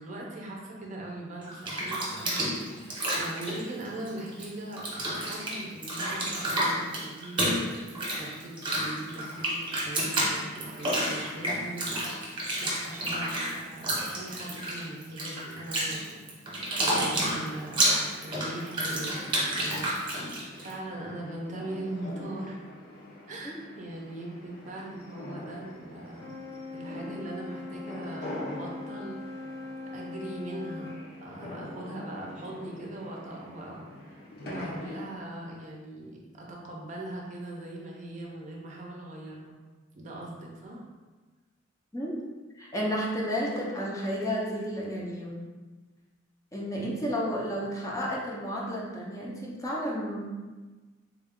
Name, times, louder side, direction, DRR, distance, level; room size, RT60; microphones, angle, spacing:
voice 1, 0.0-7.6 8.2-16.2 16.9-20.0 20.6-22.6 23.3-26.3 26.7-29.5 29.9-30.9 31.2-39.5 39.9-40.8, right 1 dB, 40° right, -2 dB, 0.6 m, -40 dB
Bathtub (filling or washing), 1.4-4.5 4.7-20.7, right 1 dB, 25° right, 0.9 m, -30 dB
sound 1, 17.0-35.1, left 1 dB, 55° left, 0.7 m, -45 dB
Wind instrument woodwind instrument, 26.1-31.0, left 3 dB, 70° left, 1.2 m, -41 dB
voice 2, 42.6-45.4 46.5-50.2, equal, 15° left, -4 dB, 0.6 m, -32 dB
3.6 x 2.3 x 3.5 m, 1.3 s
head